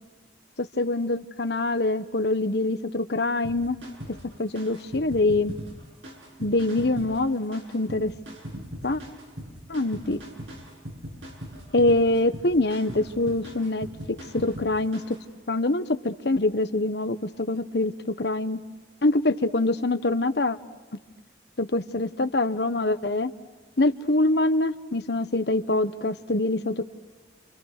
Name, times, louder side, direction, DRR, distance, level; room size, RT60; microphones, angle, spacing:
voice 1, 0.6-3.8 4.4-5.5 6.4-8.1 8.8-9.0 9.7-10.2 11.7-15.0 15.5-18.6 19.0-20.6 21.6-23.3 23.8-26.8, left 2 dB, 60° left, 10 dB, 1.1 m, -24 dB
sound 1, 3.4-15.2, equal, 85° right, 7.6 m, -40 dB
29.0 x 28.5 x 6.6 m, 1.3 s
head